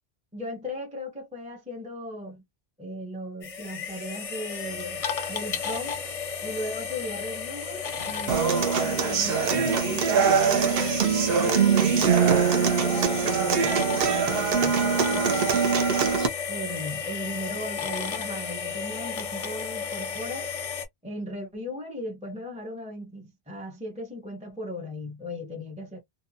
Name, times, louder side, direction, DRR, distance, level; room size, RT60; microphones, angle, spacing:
voice 1, 0.3-2.4 2.8-5.9 6.4-11.1 11.4-15.6 16.5-20.5 21.0-26.0, left 1 dB, 10° right, 0.5 m, -37 dB
sound 1, 3.4-20.9, left 6 dB, 45° left, 0.5 m, -33 dB
Human voice / Acoustic guitar, 8.3-16.3, right 6 dB, 70° right, 0.8 m, -23 dB
2.7 x 2.2 x 2.6 m
omnidirectional pair, 1.1 m